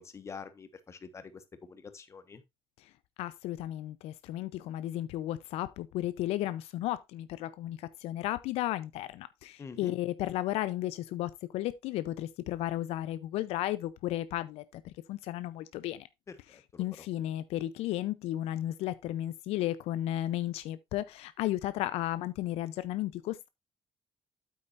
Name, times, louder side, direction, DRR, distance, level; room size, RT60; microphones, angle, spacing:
voice 1, 0.0-2.4 9.6-10.0 16.3-17.1, left 5 dB, 25° left, 1.3 m, -46 dB
voice 2, 3.2-16.1 16.8-23.5, left 14 dB, 80° left, 0.6 m, -34 dB
8.7 x 8.6 x 2.5 m
cardioid pair, 140°, 10 cm